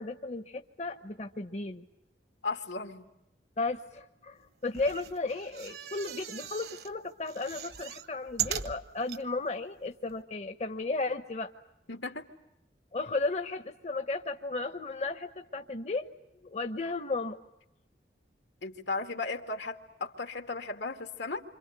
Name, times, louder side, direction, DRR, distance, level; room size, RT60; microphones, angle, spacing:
voice 1, 0.0-1.9 3.6-11.5 12.9-16.1 16.4-17.4, left 3 dB, 40° left, 8 dB, 1.0 m, -34 dB
voice 2, 2.4-3.0 11.9-12.3 18.6-21.4, left 3 dB, 85° left, 6 dB, 2.4 m, -36 dB
sound 1, 4.7-6.9 7.3-9.2 9.8-9.9 10.1-10.2, right 9 dB, 60° right, 1.2 m, -38 dB
28.0 x 26.5 x 8.1 m, 0.88 s
head